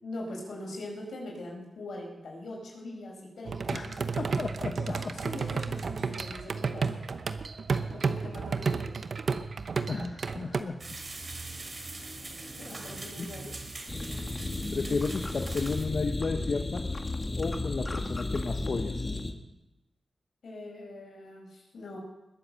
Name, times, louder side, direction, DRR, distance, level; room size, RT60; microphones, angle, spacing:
voice 1, 0.0-4.4 4.9-7.0 7.9-8.9 12.0-12.1 12.6-13.4 20.4-22.0, left 1 dB, 85° left, -1 dB, 5.4 m, -42 dB
sound 1, 3.5-10.6, right 5 dB, 70° right, 0.9 m, -32 dB
voice 2, 3.7-5.1 9.9-10.7 13.2-13.3 14.7-16.8 17.4-19.1, left 4 dB, 60° left, 4 dB, 1.1 m, -33 dB
sound 2, 10.8-15.9, right 2 dB, 50° right, 2.9 m, -42 dB
sound 3, 13.9-19.3, left 2 dB, 35° left, 1.6 m, -33 dB
21.0 x 7.9 x 6.5 m, 0.98 s
cardioid pair, 65°, 0 cm